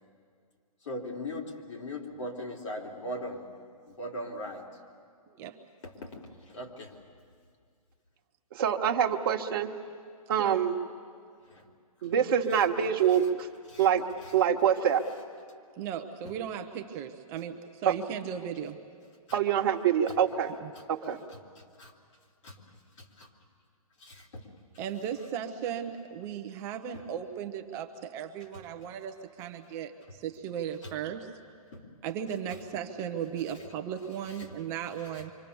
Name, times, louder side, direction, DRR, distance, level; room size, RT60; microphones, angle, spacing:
voice 1, 0.8-3.5 3.9-4.7 5.8-7.0 11.4-11.7 12.0-12.1 12.5-12.7 13.1-13.3 13.7-13.9 14.2-14.3 16.2-16.3 19.3-19.4 20.1-20.2 20.7-20.8 21.3-21.9 22.4-23.3 24.0-24.5 26.9-27.0 30.8-30.9 31.7-31.9 33.5-33.6 34.2-34.5 35.1-35.2, left 1 dB, 55° left, 0 dB, 3.8 m, -41 dB
voice 2, 5.3-5.6 10.4-10.6 15.8-18.8 20.6-20.7 24.8-31.3 32.0-35.3, right 8 dB, 15° right, 6 dB, 0.7 m, -36 dB
voice 3, 8.5-9.7 10.3-10.7 12.0-13.5 13.8-14.0 14.3-15.0 17.8-17.9 19.3-20.5 20.9-21.2, right 8 dB, 35° right, 2 dB, 1.4 m, -25 dB
27.0 x 25.0 x 7.0 m, 2.1 s
hypercardioid pair, 165°, 19 cm